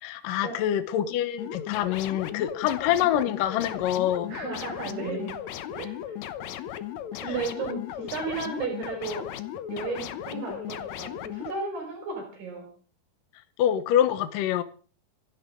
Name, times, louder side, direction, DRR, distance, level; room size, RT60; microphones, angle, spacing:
voice 1, 0.0-4.3 13.6-14.6, left 11 dB, 65° left, 2.4 m, -25 dB
sound 1, 1.4-11.5, left 11 dB, 85° left, 1.6 m, -36 dB
voice 2, 4.3-5.4 5.7-5.9 7.1-9.3 9.7-12.7, right 4 dB, 70° right, 6.9 m, -34 dB
26.5 x 12.5 x 3.8 m
omnidirectional pair, 4.7 m